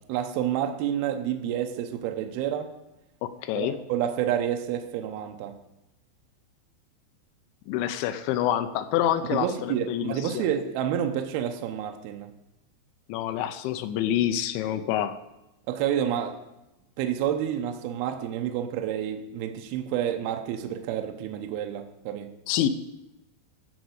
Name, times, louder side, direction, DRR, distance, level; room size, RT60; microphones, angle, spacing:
voice 1, 0.1-2.7 3.6-5.6 9.3-12.3 15.7-16.4 17.0-22.3, right 10 dB, 80° right, 5 dB, 2.4 m, -29 dB
voice 2, 3.2-3.8 7.7-10.4 13.1-15.2 22.5-22.7, left 11 dB, 85° left, 10 dB, 3.0 m, -27 dB
15.5 x 5.2 x 7.9 m, 0.94 s
omnidirectional pair, 5.3 m